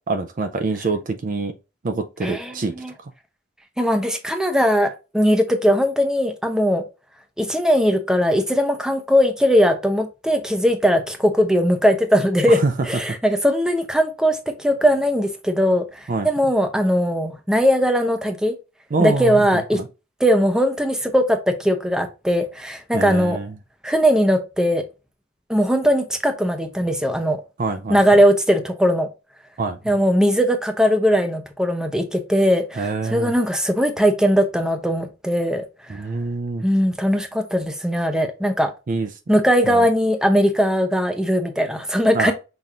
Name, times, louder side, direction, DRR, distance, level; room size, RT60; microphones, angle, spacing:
voice 1, 0.1-1.5 1.8-2.7 3.0-3.1 12.5-12.7 16.1-16.3 18.9-19.8 22.9-23.5 27.6-28.0 29.6-30.0 32.8-33.3 35.9-36.6 38.9-39.1 39.6-39.8 42.1-42.3, right 3 dB, 40° right, 0.5 m, -25 dB
voice 2, 2.2-2.9 3.8-6.8 7.4-12.6 12.8-18.5 19.0-19.8 20.2-23.4 23.8-24.8 25.5-27.4 27.9-29.1 29.8-36.0 36.6-38.7 39.3-42.3, equal, 5° right, 0.7 m, -19 dB
5.9 x 2.6 x 3.5 m
head